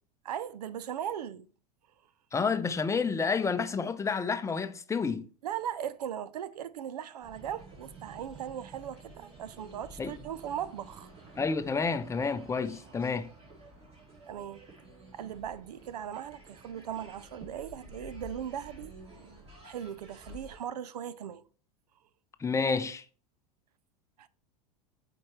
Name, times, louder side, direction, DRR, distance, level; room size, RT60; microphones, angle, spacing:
voice 1, 0.2-1.5 5.4-11.1 14.3-14.6 15.1-19.3 19.6-21.4 24.2-24.3, right 9 dB, 80° right, 0.5 m, -38 dB
voice 2, 2.3-5.2 10.0-10.1 11.4-13.3 22.4-23.0, left 5 dB, 15° left, 0.6 m, -29 dB
sound 1, 7.2-20.6, right 2 dB, 30° right, 2.7 m, -51 dB
8.6 x 4.5 x 3.1 m
hypercardioid pair, 95°, 20 cm